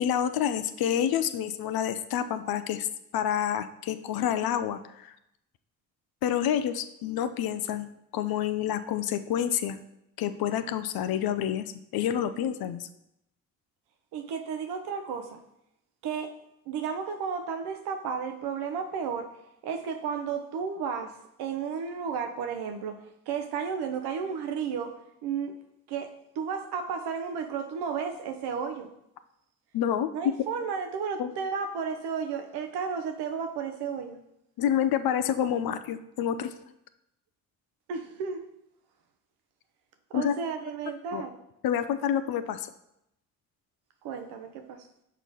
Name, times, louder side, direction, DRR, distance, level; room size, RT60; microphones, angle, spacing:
voice 1, 0.0-2.9 3.1-5.1 6.2-7.9 8.1-9.8 10.2-11.6 11.9-12.9 29.7-30.3 31.2-31.3 34.6-36.5 40.1-40.3 41.1-41.2 41.6-42.7, left 9 dB, 65° left, 11 dB, 0.7 m, -28 dB
voice 2, 14.1-15.4 16.0-16.4 16.7-19.3 19.6-25.5 25.9-28.9 30.1-34.2 37.9-38.5 40.1-41.4 44.0-44.9, right 6 dB, 75° right, 7 dB, 0.9 m, -33 dB
5.9 x 4.7 x 5.3 m, 0.82 s
hypercardioid pair, 45°, 40 cm